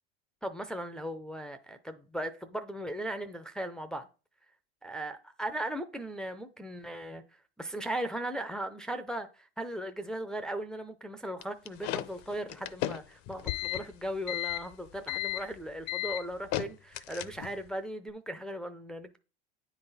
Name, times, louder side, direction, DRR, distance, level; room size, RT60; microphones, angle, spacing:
voice 1, 0.4-4.1 4.8-7.2 7.6-19.2, right 1 dB, ahead, 0.5 m, -37 dB
sound 1, 11.4-17.7, left 15 dB, 45° left, 0.6 m, -35 dB
9.5 x 4.0 x 4.0 m
hypercardioid pair, 105°, 33 cm